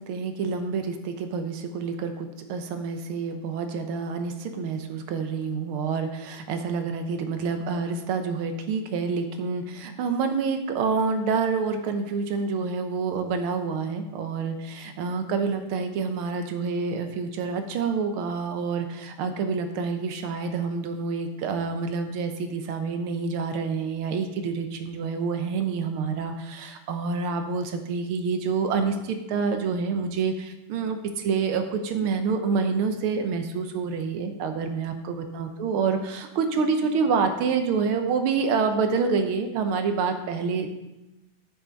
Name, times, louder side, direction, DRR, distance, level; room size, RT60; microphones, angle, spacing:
voice 1, 0.1-40.7, right 5 dB, 90° right, 6 dB, 1.8 m, -27 dB
10.5 x 6.6 x 4.0 m, 0.97 s
omnidirectional pair, 2.3 m